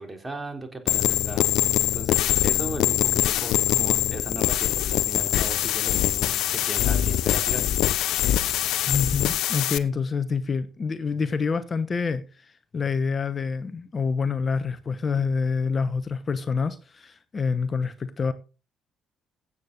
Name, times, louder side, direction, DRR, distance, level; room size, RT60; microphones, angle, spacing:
voice 1, 0.0-7.6, right 2 dB, 20° right, 3.7 m, -37 dB
sound 1, 0.9-9.8, left 13 dB, 70° left, 0.7 m, -23 dB
voice 2, 8.9-18.3, left 5 dB, 40° left, 1.1 m, -27 dB
15.5 x 8.7 x 4.0 m
hypercardioid pair, 50°, 0 cm